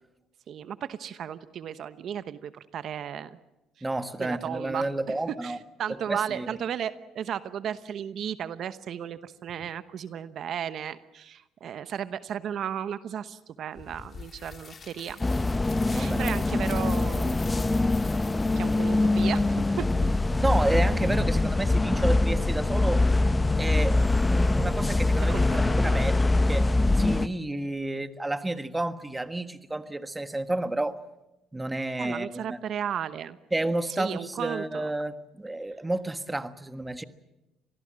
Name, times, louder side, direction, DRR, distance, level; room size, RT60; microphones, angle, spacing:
voice 1, 0.5-3.4 3.8-3.9 4.2-5.1 5.4-15.2 15.9-17.4 18.5-20.1 25.3-25.8 32.0-33.4 34.0-34.9, right 9 dB, 60° right, 12 dB, 1.0 m, -35 dB
voice 2, 3.8-5.6 5.9-6.5 15.9-16.4 20.4-23.0 23.6-31.0 31.5-32.6 33.5-37.0, right 2 dB, 15° right, 10 dB, 1.4 m, -31 dB
sound 1, 13.7-21.1, left 5 dB, 40° left, 3.4 m, -46 dB
sound 2, 15.2-27.3, left 2 dB, 15° left, 0.8 m, -23 dB
26.0 x 19.5 x 7.5 m, 0.97 s
supercardioid pair, 85°, 0 cm